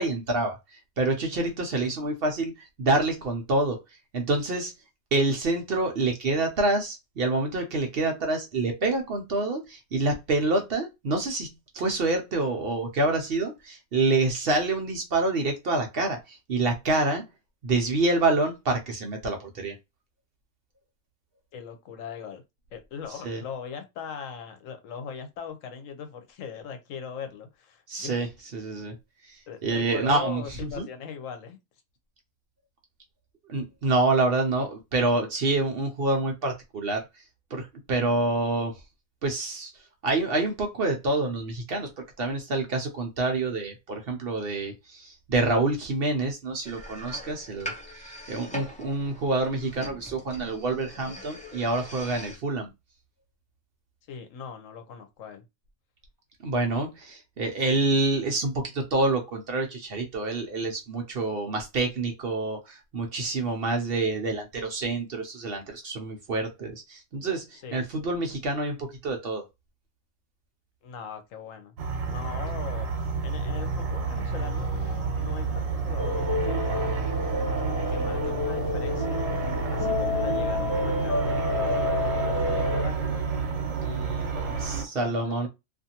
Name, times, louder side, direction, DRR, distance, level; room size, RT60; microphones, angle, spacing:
voice 1, 0.0-2.5 2.8-3.8 4.1-4.7 5.1-11.5 11.7-17.2 17.6-19.7 23.2-23.4 27.9-28.3 28.5-28.9 29.2-30.9 33.5-37.0 37.5-38.7 39.2-39.7 40.0-52.7 56.4-69.4 84.6-85.5, right 2 dB, 55° right, 0.7 m, -27 dB
voice 2, 21.5-22.4 22.7-28.2 29.5-31.6 54.1-55.4 67.5-67.8 70.8-71.7 72.0-72.9 73.2-77.1 77.9-79.3 79.7-83.3 83.8-85.5, left 7 dB, 80° left, 1.0 m, -40 dB
sound 1, 46.6-52.4, equal, 10° left, 0.5 m, -42 dB
sound 2, 71.8-84.9, right 4 dB, 85° right, 1.1 m, -29 dB
sound 3, 76.0-82.8, left 2 dB, 15° right, 0.9 m, -29 dB
2.5 x 2.5 x 2.7 m
omnidirectional pair, 1.4 m